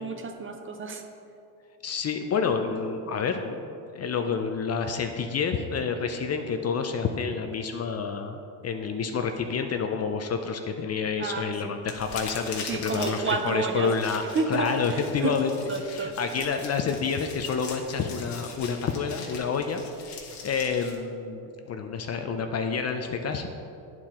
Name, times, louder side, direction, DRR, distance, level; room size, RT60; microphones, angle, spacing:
voice 1, 0.0-1.0 11.2-11.7 12.6-13.9 14.3-15.4 15.7-16.2, right 4 dB, 30° right, 5 dB, 0.6 m, -30 dB
voice 2, 1.8-3.7 3.9-14.2 14.5-15.5 15.9-23.5, left 5 dB, 35° left, 6 dB, 0.5 m, -29 dB
sound 1, 11.8-20.9, left 4 dB, 65° left, 1.4 m, -42 dB
9.7 x 4.5 x 3.7 m, 2.7 s
supercardioid pair, 85°, 45 cm